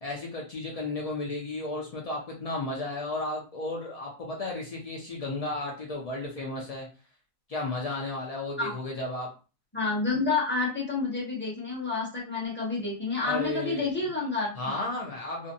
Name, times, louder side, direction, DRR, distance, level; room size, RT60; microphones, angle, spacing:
voice 1, 0.0-6.9 7.5-9.3 13.2-13.9 14.6-15.5, left 2 dB, 75° left, -2 dB, 0.3 m, -33 dB
voice 2, 9.7-14.5, left 4 dB, 10° left, -4 dB, 0.7 m, -29 dB
2.5 x 2.1 x 2.6 m, 0.34 s
omnidirectional pair, 1.4 m